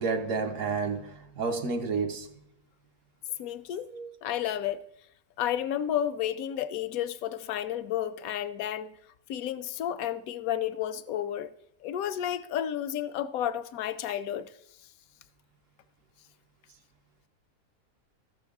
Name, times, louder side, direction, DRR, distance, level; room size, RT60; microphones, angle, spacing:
voice 1, 0.0-2.3 3.9-4.1, right 4 dB, 65° right, 1.2 m, -30 dB
voice 2, 3.4-3.9 4.2-4.8 5.4-8.9 9.3-11.5 11.8-14.5, left 10 dB, 75° left, 1.0 m, -31 dB
14.0 x 6.2 x 3.5 m
omnidirectional pair, 1.5 m